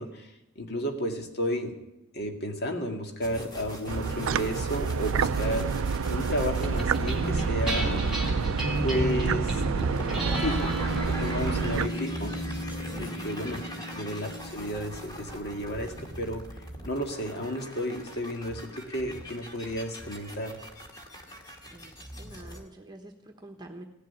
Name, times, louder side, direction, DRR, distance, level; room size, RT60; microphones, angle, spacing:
voice 1, 0.0-1.7 2.1-5.7 6.1-8.0 8.8-9.6 10.4-10.8 11.1-12.3 13.0-13.6 13.9-20.6, equal, 50° left, 3 dB, 2.0 m, -32 dB
sound 1, 3.2-22.6, equal, 20° left, 2.2 m, -39 dB
sound 2, 3.9-11.9, right 5 dB, 70° right, 0.4 m, -28 dB
sound 3, 6.6-17.2, equal, ahead, 3.5 m, -35 dB
voice 2, 13.0-13.9 21.7-21.9 22.2-23.8, right 1 dB, 20° right, 3 dB, 1.2 m, -47 dB
16.5 x 7.5 x 9.9 m, 0.92 s
head